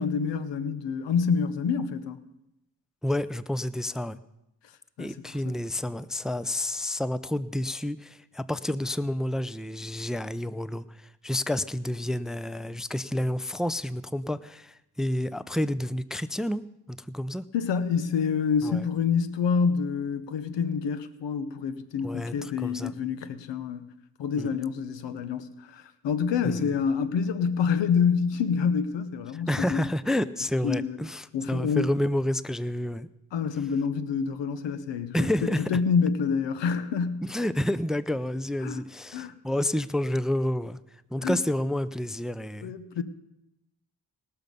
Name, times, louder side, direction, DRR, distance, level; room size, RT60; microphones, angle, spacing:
voice 1, 0.0-2.2 5.0-5.6 17.5-23.8 24.2-29.9 30.6-31.0 31.3-31.9 33.3-37.2 38.6-38.8 39.1-39.3 41.2-41.4 42.6-43.0, left 6 dB, 90° left, 0.9 m, -27 dB
voice 2, 3.0-4.2 5.0-17.4 18.6-18.8 22.0-22.9 24.4-24.6 26.4-26.7 29.3-33.1 35.1-35.7 37.2-40.8 41.1-42.7, left 1 dB, ahead, 0.5 m, -29 dB
19.5 x 6.8 x 5.3 m
cardioid pair, 55°, 42 cm